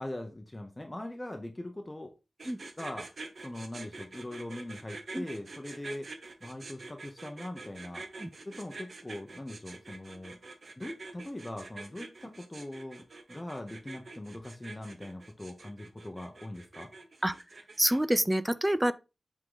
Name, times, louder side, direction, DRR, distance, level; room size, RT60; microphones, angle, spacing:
voice 1, 0.0-2.1 2.8-3.1 3.4-6.1 6.4-8.1 8.5-13.0 13.3-16.9, left 1 dB, 20° left, 0.8 m, -41 dB
sound 1, 2.4-18.2, right 3 dB, 55° right, 1.1 m, -46 dB
voice 2, 17.8-18.9, right 1 dB, 10° right, 0.4 m, -27 dB
7.9 x 3.7 x 3.9 m
wide cardioid pair, 115°, 0 cm